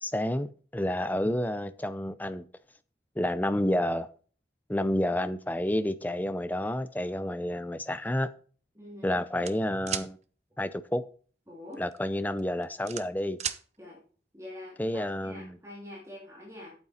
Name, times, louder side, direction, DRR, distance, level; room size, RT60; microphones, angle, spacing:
voice 1, 0.0-2.5 3.2-4.1 4.7-8.3 9.0-10.2 10.6-11.0 11.8-13.4 14.8-15.6, left 1 dB, 10° left, 0.5 m, -30 dB
voice 2, 8.7-9.2 11.5-11.8 13.8-14.0 14.3-16.7, left 1 dB, 15° right, 2.6 m, -45 dB
sound 1, 9.4-10.1 11.7-12.0 12.4-13.6, right 9 dB, 40° right, 0.7 m, -34 dB
8.9 x 8.4 x 4.2 m
head